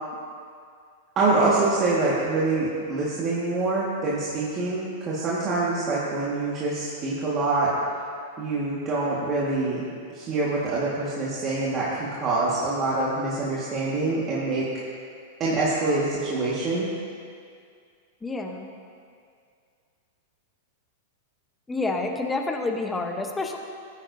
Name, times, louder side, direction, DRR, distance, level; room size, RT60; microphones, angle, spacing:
voice 1, 1.2-7.7 8.4-9.8 10.1-14.7 15.4-16.9, right 3 dB, 35° right, -7 dB, 1.8 m, -25 dB
voice 2, 18.2-18.7 21.7-23.6, left 3 dB, 10° left, 3 dB, 1.0 m, -28 dB
15.5 x 9.2 x 2.8 m, 2.2 s
hypercardioid pair, 120°, 0 cm